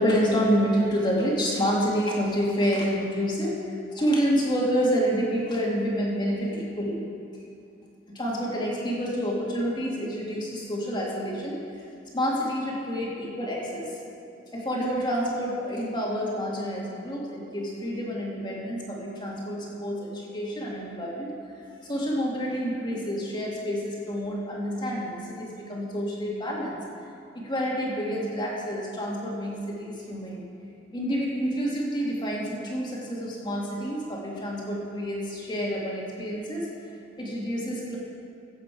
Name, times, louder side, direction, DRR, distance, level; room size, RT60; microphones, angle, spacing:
voice 1, 0.0-3.5 3.9-7.0 8.1-11.6 12.1-13.9 14.5-21.3 21.8-26.8 27.3-30.4 30.9-36.9 37.2-38.0, equal, 25° left, -3 dB, 2.1 m, -28 dB
16.0 x 8.0 x 4.7 m, 2.5 s
head